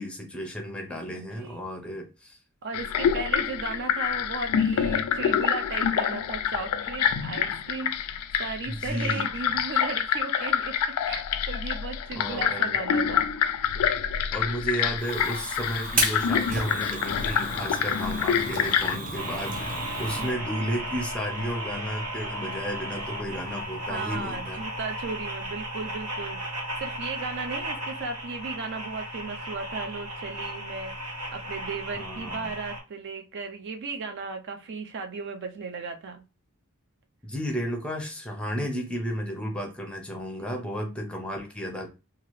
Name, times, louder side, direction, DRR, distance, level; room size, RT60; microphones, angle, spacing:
voice 1, 0.0-2.4 8.7-9.3 12.2-12.8 14.3-24.6 31.9-32.5 37.2-41.9, equal, 5° left, 0.6 m, -33 dB
voice 2, 1.1-1.6 2.6-8.1 8.4-13.3 20.1-20.3 23.9-31.0 31.3-36.2 40.4-40.6, right 4 dB, 55° right, 0.4 m, -36 dB
sound 1, 2.7-19.0, left 8 dB, 75° left, 0.3 m, -27 dB
Fire, 15.0-20.3, right 2 dB, 35° right, 0.8 m, -33 dB
sound 2, 19.1-32.8, right 1 dB, 85° right, 1.2 m, -35 dB
2.8 x 2.4 x 3.0 m
head